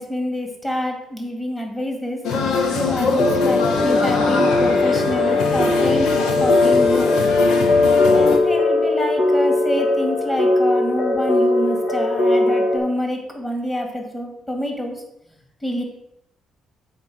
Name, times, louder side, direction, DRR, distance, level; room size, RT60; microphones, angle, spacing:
voice 1, 0.0-2.2 2.7-6.1 6.4-7.1 8.1-15.0 15.6-15.8, equal, 10° left, 2 dB, 2.2 m, -26 dB
sound 1, 2.2-8.4, left 4 dB, 90° left, 1.1 m, -23 dB
sound 2, 3.2-12.8, left 2 dB, 60° left, 1.6 m, -19 dB
8.1 x 4.4 x 6.4 m, 0.82 s
cardioid pair, 90°, 0 cm